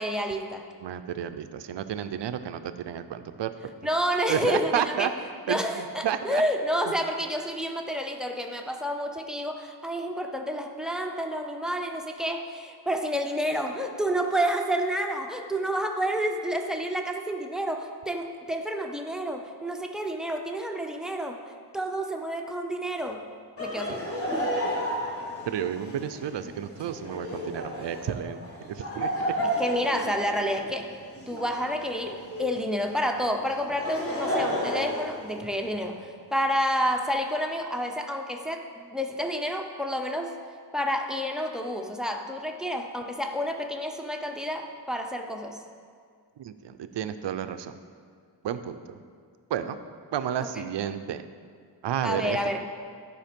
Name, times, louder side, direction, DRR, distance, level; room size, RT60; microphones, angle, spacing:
voice 1, 0.0-0.6 3.8-5.1 5.5-21.4 21.7-23.2 23.6-24.0 24.3-24.5 29.6-30.9 31.3-36.0 36.3-40.3 40.7-45.6 52.0-52.7, equal, ahead, 4 dB, 0.6 m, -29 dB
voice 2, 0.8-3.5 4.3-5.1 5.5-6.4 23.9-24.0 25.5-28.4 28.7-29.4 46.4-47.7 48.4-49.0 49.5-49.8 50.1-51.2 51.8-52.4, right 9 dB, 85° right, 11 dB, 0.6 m, -31 dB
Laughter, 23.6-32.6 33.5-35.8, equal, 35° left, 1.6 m, -32 dB
12.0 x 5.1 x 5.2 m, 2.1 s
wide cardioid pair, 135°, 42 cm